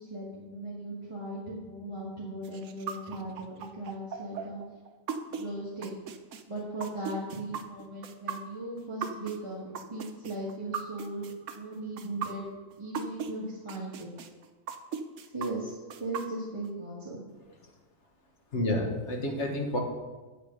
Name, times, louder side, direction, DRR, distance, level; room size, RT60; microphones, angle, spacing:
voice 1, 0.0-4.6 5.3-5.9 6.5-11.3 11.6-12.4 12.8-14.2 15.3-17.2, right 1 dB, 20° right, -6 dB, 1.6 m, -38 dB
sound 1, 2.4-13.3 13.7-16.7, right 7 dB, 65° right, 1.0 m, -38 dB
voice 2, 18.5-19.8, left 1 dB, 55° left, 2 dB, 1.7 m, -29 dB
8.4 x 8.4 x 5.3 m, 1.2 s
omnidirectional pair, 1.4 m